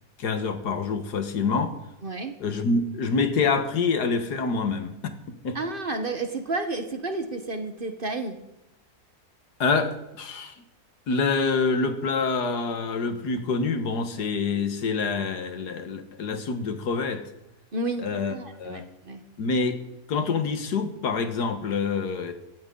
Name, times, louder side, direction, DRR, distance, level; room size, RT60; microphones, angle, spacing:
voice 1, 0.2-1.7 2.4-5.0 5.3-5.6 9.6-10.6 11.1-17.2 18.0-18.8 19.4-19.8 20.1-22.3, left 4 dB, 85° left, 8 dB, 2.0 m, -26 dB
voice 2, 2.0-2.4 5.5-8.4 17.7-19.2, right 2 dB, 35° right, 7 dB, 1.3 m, -31 dB
17.0 x 14.0 x 3.9 m, 0.90 s
omnidirectional pair, 1.7 m